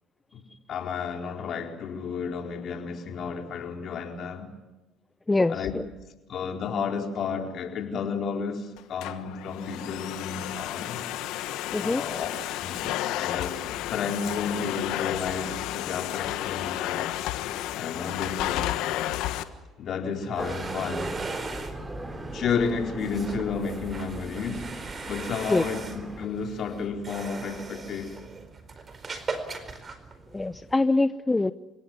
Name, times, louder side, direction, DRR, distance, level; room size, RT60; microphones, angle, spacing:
voice 1, 0.7-4.4 5.5-5.7 6.3-11.0 11.8-12.8 13.2-17.1 17.7-18.8 19.8-21.1 22.3-24.7 25.1-28.3, left 5 dB, 55° left, 4.2 m, -32 dB
Domestic sounds home sounds, 8.8-19.4, left 14 dB, 75° left, 1.4 m, -32 dB
sound 1, 20.1-30.8, right 4 dB, 35° right, 4.5 m, -40 dB
sound 2, 20.4-26.3, right 2 dB, 15° right, 3.8 m, -38 dB
voice 2, 30.3-31.5, left 2 dB, 15° left, 0.8 m, -23 dB
29.5 x 17.5 x 9.7 m
supercardioid pair, 70°, 0 cm